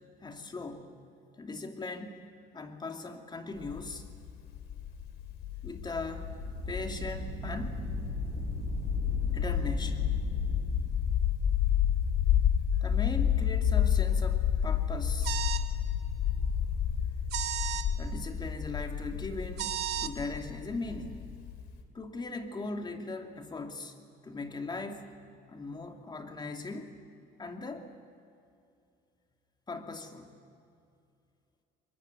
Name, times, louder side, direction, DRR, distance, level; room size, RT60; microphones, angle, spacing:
voice 1, 0.2-0.9 1.3-2.3 2.5-4.0 5.6-6.3 6.7-7.8 9.3-10.3 12.8-15.4 18.0-21.4 21.9-23.9 24.2-26.9 27.4-27.9 29.7-30.3, left 3 dB, 25° left, 5 dB, 2.7 m, -39 dB
sound 1, 3.6-21.8, left 9 dB, 75° left, 2.8 m, -30 dB
sound 2, 6.1-10.9, right 4 dB, 55° right, 7.7 m, -39 dB
sound 3, 15.2-15.7 17.3-17.9 19.6-20.1, right 12 dB, 80° right, 1.4 m, -33 dB
24.5 x 22.0 x 9.5 m, 2.5 s
cardioid pair, 110°, 17 cm